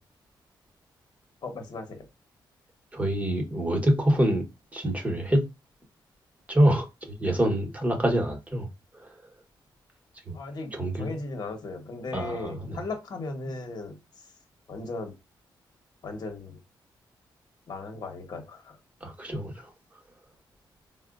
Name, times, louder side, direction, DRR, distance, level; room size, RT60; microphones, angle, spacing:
voice 1, 1.4-2.1 10.3-14.0 14.7-15.1 16.0-16.6 17.7-18.8, left 3 dB, 50° left, 1.0 m, -37 dB
voice 2, 2.9-4.5 4.7-5.5 6.5-8.7 9.0-9.1 10.3-10.4 10.7-11.1 12.1-12.8 19.0-19.7, right 1 dB, 15° right, 1.1 m, -26 dB
4.1 x 2.2 x 2.4 m
cardioid pair, 95°, 8 cm